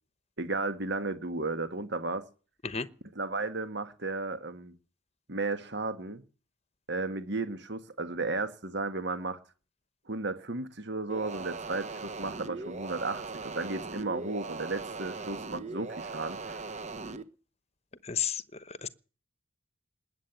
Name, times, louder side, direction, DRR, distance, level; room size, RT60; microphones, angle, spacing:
voice 1, 0.4-2.2 3.1-4.7 5.3-6.2 6.9-9.4 10.1-16.6, right 3 dB, 60° right, 1.7 m, -34 dB
sound 1, 11.1-17.2, right 3 dB, 35° right, 1.2 m, -39 dB
voice 2, 18.0-18.4 18.7-18.9, left 8 dB, 30° left, 0.9 m, -32 dB
20.0 x 7.7 x 8.9 m
head